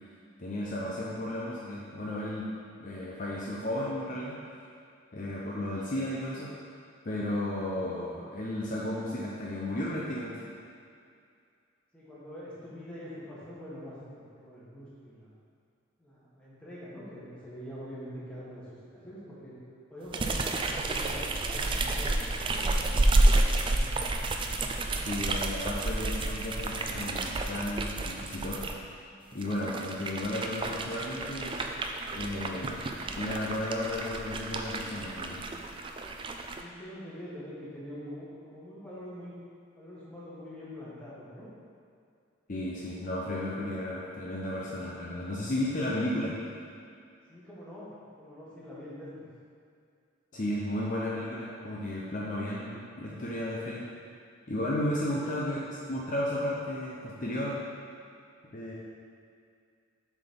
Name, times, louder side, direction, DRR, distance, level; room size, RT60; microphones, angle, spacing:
voice 1, 0.4-2.5 2.8-4.4 5.1-6.5 7.0-10.4 25.1-28.6 29.3-31.6 32.1-32.9 33.2-35.4 42.5-46.5 50.3-53.9 54.5-57.6 58.5-58.7, left 1 dB, 40° left, -5 dB, 0.7 m, -33 dB
voice 2, 11.9-15.3 16.0-19.5 19.9-23.1 23.4-24.2 36.6-39.3 39.7-41.5 47.3-49.2 55.0-55.4, equal, 5° left, -9 dB, 1.6 m, -44 dB
sound 1, 20.1-28.7 29.3-36.6, right 2 dB, 25° right, 0.3 m, -30 dB
7.1 x 4.2 x 5.3 m, 2.3 s
head